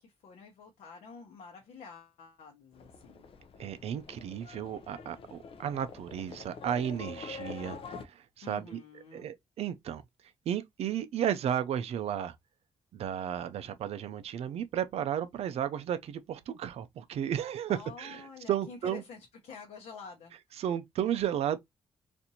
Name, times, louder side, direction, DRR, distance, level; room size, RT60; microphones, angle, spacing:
voice 1, 0.0-3.3 8.4-9.3 17.7-20.6, left 5 dB, 85° left, 0.9 m, -49 dB
Livestock farm animals working animals, 2.7-8.1, left 5 dB, 60° left, 0.6 m, -46 dB
voice 2, 3.6-8.8 9.1-10.0 10.5-12.3 12.9-19.0 20.6-21.6, right 9 dB, 70° right, 0.4 m, -33 dB
4.2 x 2.6 x 2.7 m
wide cardioid pair, 175°, 11 cm